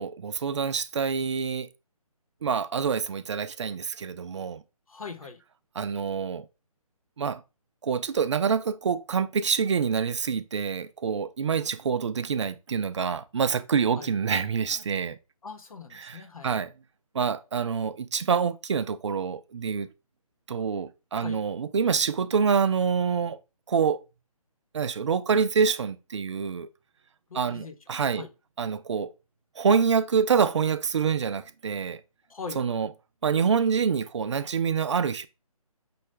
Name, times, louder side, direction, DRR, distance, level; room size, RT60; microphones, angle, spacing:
voice 1, 0.0-1.7 2.4-4.6 5.8-6.4 7.2-7.4 7.8-15.2 16.0-16.7 17.1-19.9 20.5-23.4 23.7-24.0 24.7-26.7 27.3-28.2 28.6-29.1 29.6-32.0 32.6-32.9 33.2-35.3, right 6 dB, 50° right, 0.4 m, -26 dB
voice 2, 4.9-5.4 11.5-11.8 14.0-14.1 15.4-16.6 20.6-20.7 21.1-21.4 27.3-27.7 28.1-28.3 32.3-32.8, left 5 dB, 70° left, 0.9 m, -41 dB
5.5 x 2.3 x 3.2 m
figure-of-eight pair, 160°, 19 cm